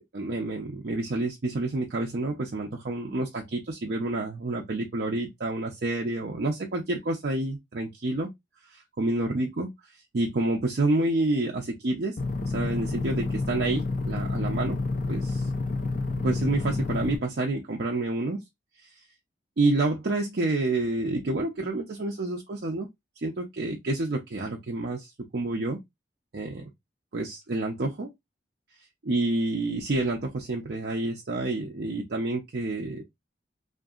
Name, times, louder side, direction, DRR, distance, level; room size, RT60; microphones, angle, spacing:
voice 1, 0.1-8.3 8.7-9.7 10.1-12.1 12.4-14.8 15.1-15.5 16.2-18.4 19.6-22.9 23.2-25.8 26.3-26.7 27.1-28.1 29.0-33.0, right 2 dB, 55° right, 0.5 m, -28 dB
sound 1, 12.2-17.2, left 3 dB, 45° left, 0.4 m, -29 dB
2.7 x 2.5 x 2.4 m
head